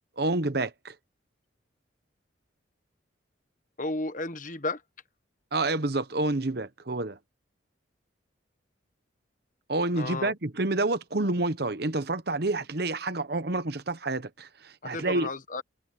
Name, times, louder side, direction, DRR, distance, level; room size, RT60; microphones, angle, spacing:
voice 1, 0.2-0.9 5.5-7.2 9.7-15.3, right 2 dB, 55° right, 1.0 m, -28 dB
voice 2, 3.8-4.8 9.9-10.3 14.8-15.6, left 2 dB, 40° left, 1.2 m, -33 dB
head